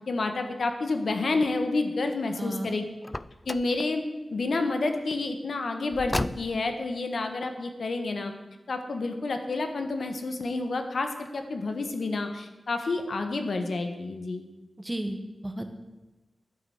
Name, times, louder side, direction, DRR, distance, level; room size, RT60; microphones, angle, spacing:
voice 1, 0.1-2.8 3.4-4.0 4.3-8.3 8.7-14.4, left 3 dB, 70° left, 6 dB, 1.5 m, -29 dB
voice 2, 2.4-2.8 14.8-15.7, right 1 dB, 15° right, 6 dB, 1.4 m, -34 dB
Car, 3.0-3.8 5.9-6.8, left 1 dB, 15° left, 0.4 m, -33 dB
11.0 x 10.0 x 8.0 m, 1.1 s
wide cardioid pair, 125°, 0 cm